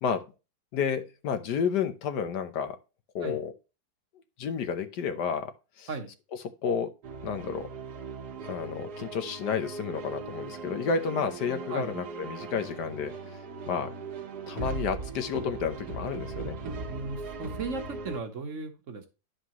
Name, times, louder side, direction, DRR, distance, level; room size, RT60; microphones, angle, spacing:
voice 1, 0.7-2.8 3.1-3.5 4.4-5.5 5.8-5.9 6.6-6.9 7.2-7.7 8.4-13.1 13.7-13.9 14.5-16.6, left 6 dB, 80° left, 1.5 m, -31 dB
sound 1, 7.0-18.2, right 4 dB, 70° right, 1.7 m, -39 dB
voice 2, 16.9-19.1, right 3 dB, 50° right, 1.4 m, -36 dB
11.0 x 5.0 x 3.0 m
omnidirectional pair, 1.8 m